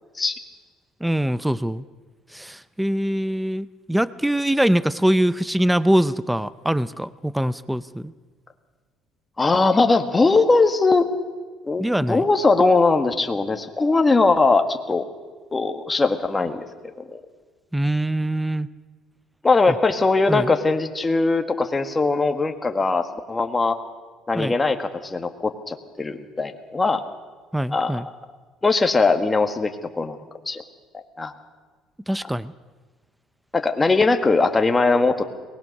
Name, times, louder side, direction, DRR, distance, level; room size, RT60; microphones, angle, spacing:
voice 1, 1.0-1.8 2.3-8.1 11.8-12.2 17.7-18.7 19.7-19.8 20.3-20.5 24.3-24.5 27.5-28.1 32.1-32.5, right 1 dB, 5° right, 16 dB, 0.6 m, -23 dB
voice 2, 9.4-11.1 11.6-15.0 15.5-16.7 17.1-17.2 19.4-23.8 24.3-27.0 27.7-28.0 28.6-30.2 30.4-30.6 30.9-31.3 33.5-35.2, left 3 dB, 20° left, 6 dB, 1.7 m, -20 dB
23.0 x 20.0 x 6.6 m, 1.4 s
cardioid pair, 115°, 0 cm